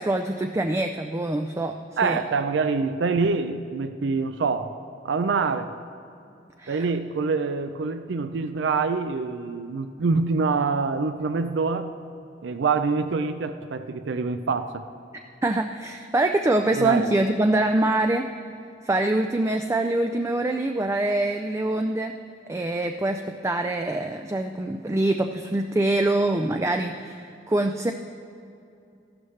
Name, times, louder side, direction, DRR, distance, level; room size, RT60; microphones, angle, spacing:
voice 1, 0.0-1.8 2.0-2.2 6.6-6.9 15.4-18.2 18.8-22.1 22.5-27.9, right 2 dB, 15° right, 5 dB, 0.3 m, -24 dB
voice 2, 2.0-4.7 5.0-5.7 6.7-11.9 12.4-14.8 16.7-17.1, right 4 dB, 85° right, 10 dB, 0.5 m, -25 dB
14.0 x 12.0 x 3.2 m, 2.5 s
head